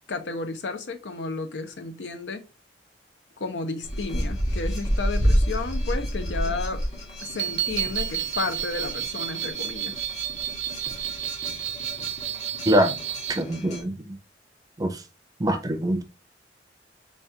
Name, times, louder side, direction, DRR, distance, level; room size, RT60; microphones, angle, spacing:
voice 1, 0.0-2.5 3.4-6.8 7.2-9.9, left 3 dB, 85° left, 0.6 m, -32 dB
sound 1, 3.8-13.8, equal, 40° left, 1.6 m, -30 dB
sound 2, 7.2-13.4, right 11 dB, 70° right, 0.5 m, -31 dB
voice 2, 12.7-13.0 13.3-13.9 14.8-14.9 15.4-16.0, equal, 20° right, 0.5 m, -23 dB
4.1 x 2.3 x 3.4 m
head